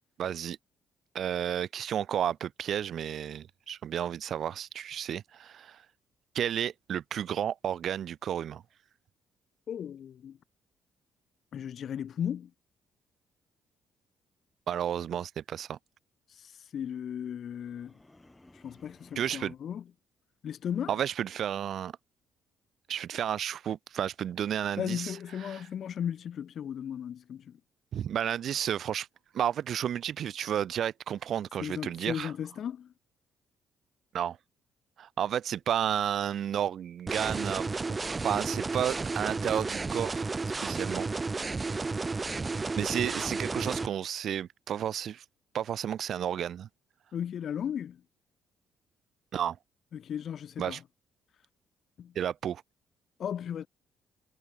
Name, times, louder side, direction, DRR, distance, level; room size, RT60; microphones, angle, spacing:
voice 1, 0.2-0.6 1.1-5.8 6.3-8.6 14.7-15.8 19.2-19.5 20.9-21.9 22.9-25.2 25.4-25.6 27.9-29.1 29.3-32.3 34.1-34.4 35.0-37.7 38.2-41.1 42.8-45.2 45.5-46.7 49.3-49.6 50.6-50.8 52.1-52.6, right 9 dB, 65° right, 0.9 m, -32 dB
voice 2, 9.7-10.4 11.5-12.5 16.3-18.0 18.5-19.8 20.4-21.0 24.8-27.6 31.6-32.9 47.1-48.0 49.9-50.8 52.0-52.2 53.2-53.7, left 9 dB, 60° left, 0.5 m, -36 dB
sound 1, 17.5-19.6, left 2 dB, 15° left, 3.5 m, -58 dB
sound 2, 37.1-43.9, right 3 dB, 25° right, 0.3 m, -32 dB
cardioid pair, 80°, 0 cm